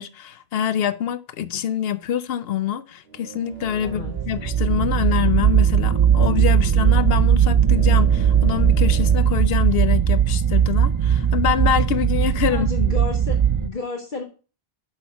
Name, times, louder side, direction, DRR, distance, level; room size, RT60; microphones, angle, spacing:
voice 1, 0.0-12.7, left 9 dB, 75° left, 0.8 m, -25 dB
sound 1, 3.0-9.3, right 6 dB, 75° right, 1.4 m, -40 dB
sound 2, 3.7-13.7, right 8 dB, 35° right, 0.5 m, -18 dB
voice 2, 3.8-4.2 12.5-14.2, left 3 dB, 55° left, 1.2 m, -31 dB
6.3 x 5.4 x 5.6 m
omnidirectional pair, 1.0 m